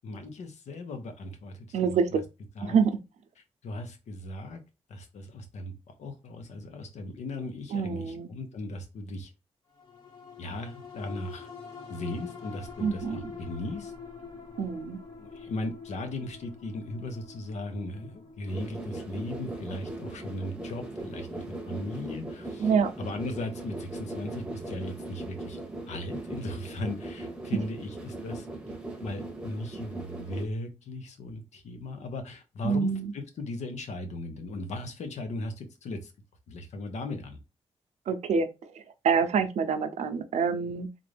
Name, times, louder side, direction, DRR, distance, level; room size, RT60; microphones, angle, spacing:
voice 1, 0.0-1.8 2.6-2.8 3.6-4.6 4.9-5.7 6.0-9.3 10.4-11.5 11.9-13.9 15.2-22.7 23.0-25.6 25.9-28.5 29.0-36.1 36.5-37.4, left 2 dB, 85° left, 1.0 m, -37 dB
voice 2, 1.7-2.2 2.6-2.9 7.7-8.3 12.8-13.3 14.6-15.0 22.6-22.9 32.6-33.1 38.1-40.9, right 6 dB, 90° right, 0.6 m, -26 dB
sound 1, 9.7-24.4 24.8-24.9, left 5 dB, 35° left, 2.1 m, -47 dB
sound 2, 18.5-30.5, right 2 dB, 10° right, 0.9 m, -39 dB
3.8 x 2.5 x 3.3 m
wide cardioid pair, 120°, 11 cm